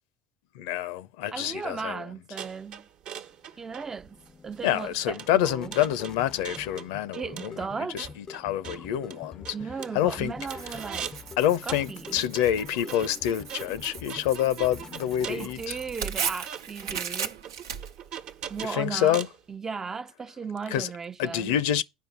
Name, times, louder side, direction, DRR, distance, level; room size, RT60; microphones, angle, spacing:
voice 1, 0.5-2.1 4.6-9.6 9.9-10.3 11.4-15.8 18.6-19.3 20.7-20.9 21.2-21.8, left 11 dB, 70° left, 0.7 m, -27 dB
voice 2, 1.3-2.9 3.6-5.2 5.4-5.7 7.1-8.0 9.5-11.1 11.6-12.2 15.3-17.4 18.5-19.2 19.5-21.6, right 5 dB, 25° right, 0.5 m, -36 dB
sound 1, 2.4-11.3 11.7-19.4, right 8 dB, 55° right, 1.1 m, -42 dB
sound 2, 3.5-16.3, left 5 dB, 30° left, 0.5 m, -46 dB
Tearing, 10.5-18.7, right 7 dB, 85° right, 0.9 m, -37 dB
9.5 x 5.3 x 7.1 m
hypercardioid pair, 80°, 2 cm